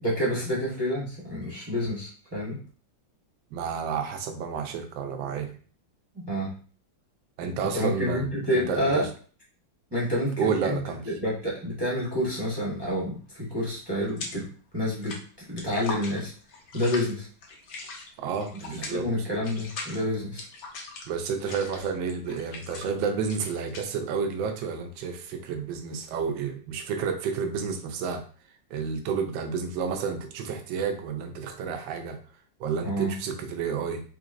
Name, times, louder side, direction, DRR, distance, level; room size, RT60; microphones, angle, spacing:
voice 1, 0.0-2.6 6.1-6.5 7.7-9.0 9.9-10.8 11.1-14.4 14.7-16.3 16.7-17.3 18.9-20.4 32.8-33.1, equal, 15° right, -7 dB, 0.9 m, -28 dB
voice 2, 3.5-5.6 7.4-9.1 10.4-11.0 18.2-19.0 21.1-28.2 28.7-32.2 32.6-34.0, right 6 dB, 75° right, 5 dB, 1.3 m, -30 dB
sound 1, 12.2-12.5 12.8-14.6 14.8-26.4, left 3 dB, 65° left, 1.3 m, -41 dB
3.9 x 3.2 x 2.5 m, 0.41 s
omnidirectional pair, 2.2 m